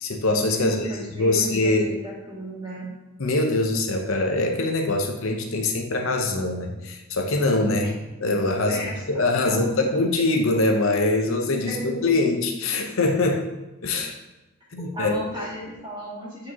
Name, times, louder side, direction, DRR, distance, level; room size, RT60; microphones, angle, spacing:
voice 1, 0.0-0.9 1.2-2.0 3.2-8.8 9.1-13.5 13.8-14.2 14.7-15.4, left 2 dB, 65° left, 3 dB, 0.7 m, -23 dB
voice 2, 0.6-2.9 7.8-7.9 8.7-9.7 10.0-10.1 11.7-12.1 14.9-16.5, equal, 20° right, -7 dB, 2.1 m, -35 dB
8.5 x 4.6 x 2.9 m, 1.1 s
head